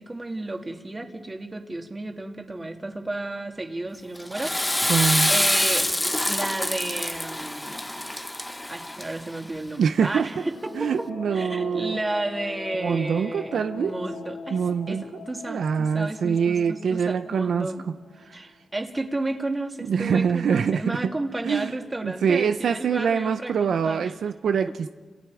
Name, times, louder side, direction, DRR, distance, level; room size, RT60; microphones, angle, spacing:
voice 1, 0.0-4.7 5.3-5.9 6.3-7.9 8.7-11.1 11.3-14.6 14.9-17.9 18.3-24.1, right 2 dB, 25° right, 4 dB, 2.5 m, -32 dB
Water / Toilet flush, 4.2-9.4, left 1 dB, 10° left, 1.0 m, -26 dB
voice 2, 4.9-5.3 9.8-10.4 10.7-12.0 12.8-13.9 14.5-15.0 15.5-17.7 18.3-18.4 19.9-21.1 21.4-21.7 22.0-24.9, right 6 dB, 80° right, 9 dB, 0.6 m, -24 dB
sound 1, 10.0-18.6, left 4 dB, 85° left, 6.9 m, -41 dB
30.0 x 27.5 x 4.9 m, 1.5 s
cardioid pair, 80°, 0 cm